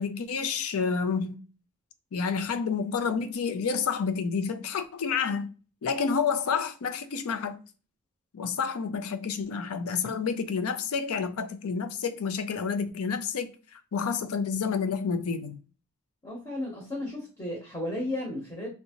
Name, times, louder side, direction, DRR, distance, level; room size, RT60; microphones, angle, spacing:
voice 1, 0.0-1.4 2.1-5.5 5.8-7.6 8.3-13.5 13.9-15.6, left 5 dB, 85° left, 0.5 m, -29 dB
voice 2, 16.2-18.7, left 1 dB, 20° left, 0.8 m, -34 dB
3.2 x 2.7 x 2.9 m
head